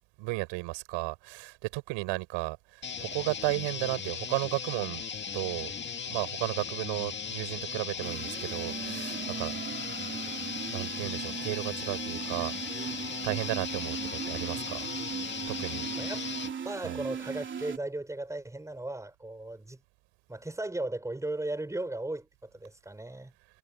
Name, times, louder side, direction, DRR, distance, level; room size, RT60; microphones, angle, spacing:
voice 1, 0.2-5.0 5.3-5.7 6.1-9.6 10.7-13.0 13.2-14.9 15.5-15.9 16.8-17.0, right 23 dB, 70° right, 7.1 m, -34 dB
sound 1, 2.8-16.5, left 6 dB, 25° left, 2.0 m, -37 dB
sound 2, 8.0-17.8, right 7 dB, 25° right, 3.3 m, -38 dB
voice 2, 16.0-16.3 16.6-19.8 20.3-23.3, right 2 dB, 5° right, 7.2 m, -36 dB
cardioid pair, 145°, 46 cm